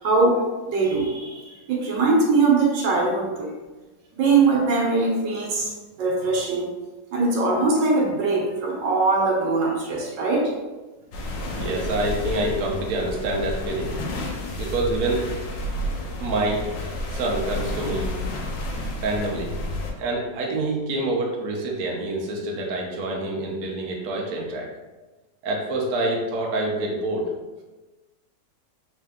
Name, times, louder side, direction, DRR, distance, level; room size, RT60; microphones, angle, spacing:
voice 1, 0.0-3.6 4.1-5.7 6.0-6.7 7.1-10.5, right 3 dB, 85° right, -1 dB, 1.6 m, -21 dB
sound 1, 11.1-19.9, left 1 dB, 90° left, 1.4 m, -30 dB
voice 2, 11.5-13.9 14.6-15.2 16.2-16.7 17.1-18.1 19.0-19.5 20.0-24.7 25.4-27.3, right 2 dB, 65° right, -2 dB, 1.1 m, -26 dB
3.7 x 3.5 x 3.5 m, 1.2 s
omnidirectional pair, 1.9 m